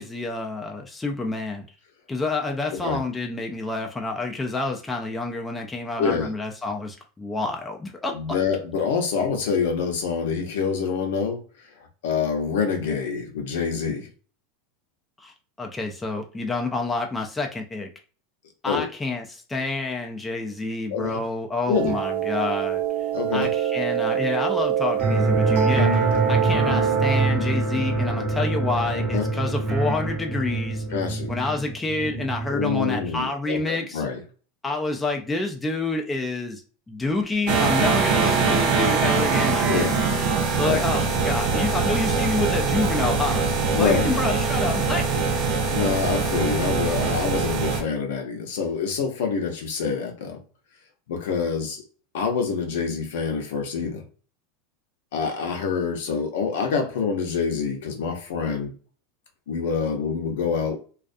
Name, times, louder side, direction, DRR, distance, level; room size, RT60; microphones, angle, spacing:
voice 1, 0.0-1.6 2.1-8.1 15.2-17.9 18.6-22.8 23.3-26.0 26.3-30.8 31.3-34.0 34.6-36.6 36.9-39.9 40.6-43.4 43.8-45.2, left 3 dB, 10° left, 0.3 m, -28 dB
voice 2, 6.0-6.3 8.1-11.7 12.0-14.1 18.7-18.9 20.9-21.2 21.7-22.0 23.1-23.5 29.1-29.3 30.9-31.3 32.5-34.2 39.7-39.9 40.3-40.9 43.7-44.1 45.1-45.2 45.7-50.4 51.1-51.8 52.1-54.0 55.1-58.7 59.5-60.8, left 6 dB, 80° left, 0.7 m, -26 dB
sound 1, 21.7-27.3, right 10 dB, 85° right, 0.4 m, -25 dB
sound 2, 25.0-33.1, right 2 dB, 15° right, 0.8 m, -25 dB
sound 3, 37.5-47.8, right 4 dB, 55° right, 0.7 m, -23 dB
2.3 x 2.3 x 2.5 m
supercardioid pair, 150°, 0 cm